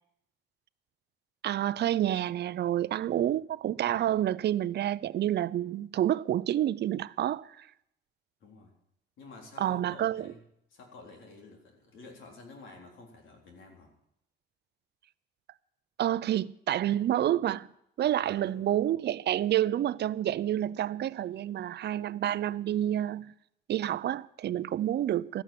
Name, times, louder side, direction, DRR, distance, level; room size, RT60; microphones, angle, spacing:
voice 1, 1.4-7.7 9.6-10.3 16.0-17.7 18.0-23.3 23.7-25.4, right 12 dB, 55° right, 0.5 m, -29 dB
voice 2, 3.0-3.4 8.4-8.7 9.2-10.4 10.7-13.9 18.2-18.8, left 3 dB, 80° left, 3.8 m, -50 dB
14.0 x 9.4 x 7.5 m
cardioid pair, 90°, 20 cm